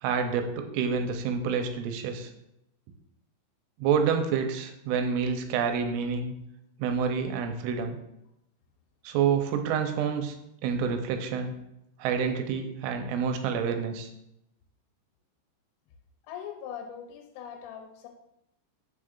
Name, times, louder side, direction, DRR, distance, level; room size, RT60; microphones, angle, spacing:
voice 1, 0.0-2.3 3.8-6.3 6.8-8.0 9.0-10.4 10.6-11.5 12.0-14.1, right 6 dB, 85° right, 6 dB, 3.0 m, -28 dB
voice 2, 16.2-18.1, left 8 dB, 90° left, 2 dB, 3.4 m, -41 dB
10.0 x 7.0 x 2.5 m, 0.83 s
omnidirectional pair, 5.9 m